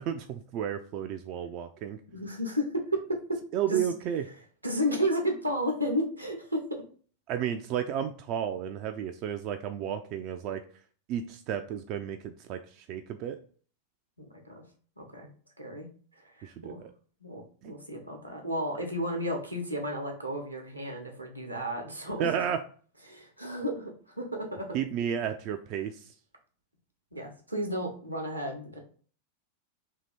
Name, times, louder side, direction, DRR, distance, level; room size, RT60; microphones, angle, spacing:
voice 1, 0.0-2.0 3.5-4.2 7.3-10.6 11.1-13.4 16.4-16.9 17.6-17.7 22.2-22.6 24.7-26.1, right 9 dB, 40° right, 7 dB, 0.3 m, -32 dB
voice 2, 2.1-2.8 3.7-3.8 4.6-6.6 14.2-14.5 15.0-15.3 15.6-15.9 16.2-16.8 17.2-22.3 23.1-24.8 27.1-28.8, equal, 85° right, 2 dB, 0.9 m, -33 dB
2.9 x 2.8 x 4.0 m, 0.43 s
figure-of-eight pair, 90°, 0 cm